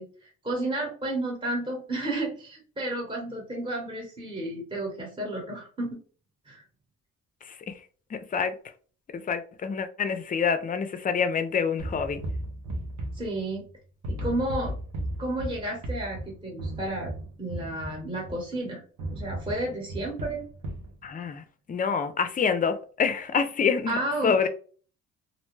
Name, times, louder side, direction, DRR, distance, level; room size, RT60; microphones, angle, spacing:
voice 1, 0.0-6.0 6.4-6.6 13.1-13.7 14.1-14.8 15.2-17.1 17.4-18.8 19.1-20.4 23.9-24.5, right 1 dB, 15° right, 1.0 m, -32 dB
voice 2, 8.1-8.6 9.1-12.2 21.0-24.5, left 6 dB, 30° left, 0.4 m, -27 dB
sound 1, 11.8-13.7 14.0-18.5 19.0-20.9, right 1 dB, 75° right, 0.8 m, -35 dB
2.5 x 2.2 x 3.1 m
cardioid pair, 90°, 30 cm